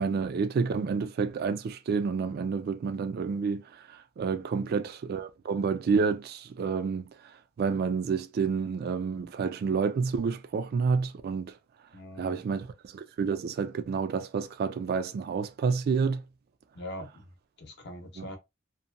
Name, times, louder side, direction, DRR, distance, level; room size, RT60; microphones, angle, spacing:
voice 1, 0.0-3.6 3.9-7.0 7.6-11.5 12.2-16.2 18.2-18.3, right 5 dB, 50° right, 0.3 m, -29 dB
voice 2, 11.9-12.4 16.7-17.3 17.6-18.4, left 1 dB, 60° left, 0.7 m, -42 dB
2.8 x 2.1 x 2.4 m
head